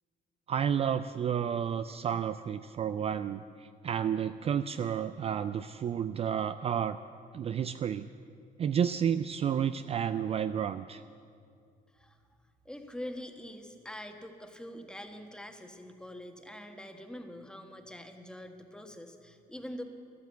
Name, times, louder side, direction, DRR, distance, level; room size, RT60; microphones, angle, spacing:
voice 1, 0.5-7.0 7.3-8.1 8.6-11.0, right 8 dB, 35° right, 12 dB, 0.4 m, -31 dB
voice 2, 11.9-19.8, left 1 dB, 5° left, 5 dB, 1.4 m, -44 dB
13.5 x 12.0 x 8.1 m, 2.3 s
cardioid pair, 110°, 17 cm